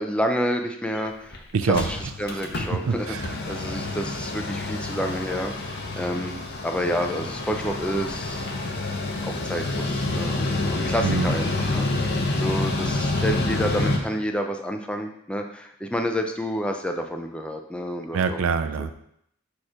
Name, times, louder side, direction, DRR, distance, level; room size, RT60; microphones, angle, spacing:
voice 1, 0.0-6.4 6.6-8.5 9.2-18.4 18.8-18.9, equal, 5° left, 4 dB, 0.5 m, -29 dB
Mechanical fan, 1.0-1.1 1.3-1.4 1.6-14.0, left 2 dB, 55° left, 0.9 m, -28 dB
voice 2, 1.5-1.9 2.3-2.4 2.7-3.2 11.0-11.3 18.1-18.9, right 5 dB, 90° right, 10 dB, 0.4 m, -24 dB
6.5 x 3.0 x 4.9 m, 0.72 s
head